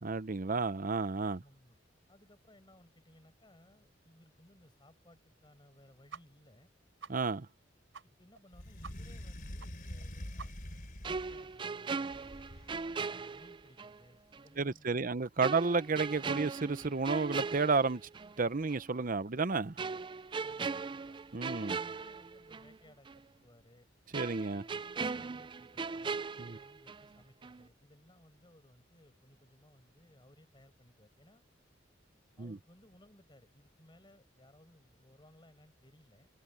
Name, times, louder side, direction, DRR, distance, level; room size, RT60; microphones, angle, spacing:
voice 1, 0.0-1.4 7.1-7.5 14.6-18.0 18.4-19.8 21.3-21.8 24.1-24.6 26.4-26.6 32.4-32.6, right 4 dB, 45° right, 0.8 m, -31 dB
voice 2, 1.4-1.8 2.1-6.7 8.0-12.4 13.1-15.7 20.3-21.2 21.5-23.9 24.5-31.4 32.4-36.3, left 1 dB, 25° left, 7.3 m, -62 dB
sound 1, 6.1-6.2 6.5-6.6 7.0-7.1 7.5-7.6 7.9-8.1 8.3-8.5 8.8-8.9 9.2-9.3 9.6-9.7 10.0-10.1 10.4-10.8, right 5 dB, 85° right, 4.2 m, -48 dB
sound 2, 8.5-11.6 12.1-13.0, left 1 dB, 50° left, 3.1 m, -45 dB
sound 3, 11.0-14.0 14.3-14.5 15.4-18.4 18.7-18.9 19.8-22.8 23.1-23.2 24.1-27.2 27.4-27.7, right 4 dB, 25° right, 0.4 m, -39 dB
head